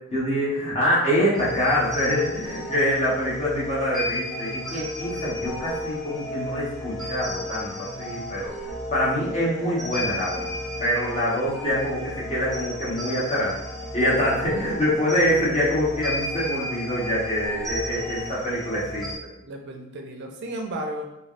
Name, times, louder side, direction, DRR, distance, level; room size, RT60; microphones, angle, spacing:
voice 1, 0.1-8.5 8.9-10.5 10.8-13.6 13.9-19.3, equal, 35° left, -7 dB, 1.0 m, -25 dB
sound 1, 1.3-19.2, left 1 dB, ahead, 0.5 m, -33 dB
voice 2, 19.4-21.0, right 1 dB, 60° right, 2 dB, 0.4 m, -34 dB
3.3 x 2.2 x 2.4 m, 0.89 s
head